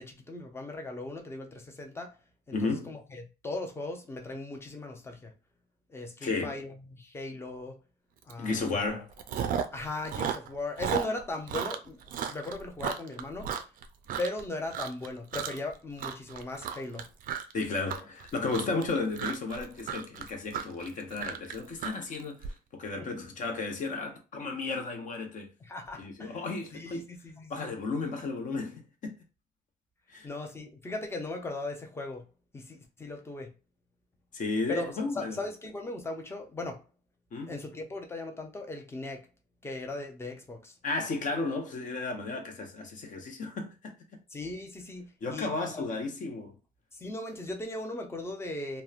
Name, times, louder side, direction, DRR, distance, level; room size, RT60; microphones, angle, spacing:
voice 1, 0.0-2.1 2.5-5.3 5.9-7.8 8.2-8.8 9.7-13.5 14.2-17.1 23.0-23.1 25.6-26.4 26.7-27.7 30.2-32.2 32.5-33.5 34.7-36.8 37.4-39.3 39.6-40.8 44.3-45.9 46.9-48.8, left 2 dB, 15° left, 0.6 m, -38 dB
voice 2, 2.5-2.9 6.2-6.6 8.4-9.1 17.5-25.5 26.0-27.0 27.5-29.2 30.1-30.3 34.3-35.4 37.3-37.5 40.8-44.2 45.2-46.5, left 3 dB, 50° left, 0.8 m, -33 dB
Chewing mastication, 8.3-8.5 8.8-9.8 10.0-14.4 14.7-15.1 15.3-15.7 16.0-22.5, right 8 dB, 55° right, 0.4 m, -34 dB
2.9 x 2.1 x 2.4 m
cardioid pair, 110°, 17 cm